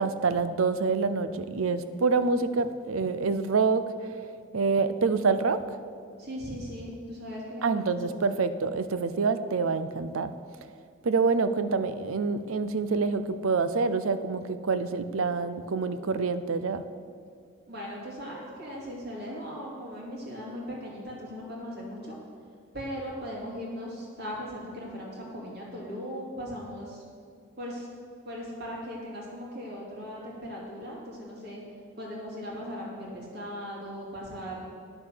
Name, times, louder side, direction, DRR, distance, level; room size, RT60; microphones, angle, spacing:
voice 1, 0.0-5.6 7.6-10.3 11.0-16.8, right 4 dB, 80° right, 12 dB, 0.6 m, -27 dB
voice 2, 6.2-8.2 17.7-22.2 22.7-27.0 27.6-27.9 28.2-31.6 32.0-34.6, equal, 50° right, -4 dB, 2.7 m, -38 dB
9.9 x 6.9 x 6.7 m, 2.2 s
head